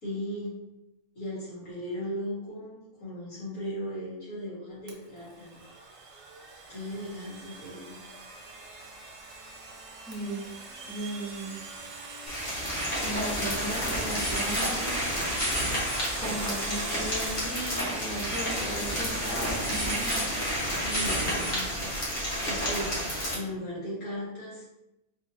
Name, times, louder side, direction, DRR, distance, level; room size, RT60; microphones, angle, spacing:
voice 1, 0.0-0.6 1.2-5.6 6.7-8.0 20.8-22.0 22.4-24.6, equal, 90° left, -9 dB, 2.1 m, -37 dB
Domestic sounds home sounds, 4.9-21.7, right 3 dB, 65° right, 1.0 m, -43 dB
voice 2, 10.0-10.5 10.9-11.5 13.0-14.9 16.2-20.2, right 1 dB, 5° right, -6 dB, 0.7 m, -36 dB
sound 1, 12.3-23.3, equal, 40° left, 1.1 m, -30 dB
3.7 x 2.7 x 2.8 m, 0.91 s
omnidirectional pair, 1.5 m